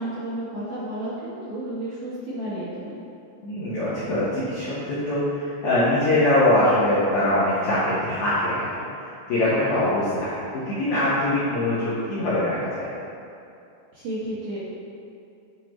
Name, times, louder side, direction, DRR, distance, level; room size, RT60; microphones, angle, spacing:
voice 1, 0.0-3.0 13.9-14.6, right 1 dB, 70° right, -10 dB, 2.1 m, -32 dB
voice 2, 3.4-8.7 9.0-10.4 10.7-12.9, left 1 dB, 70° left, -11 dB, 1.9 m, -23 dB
10.0 x 4.5 x 3.0 m, 2.7 s
omnidirectional pair, 5.0 m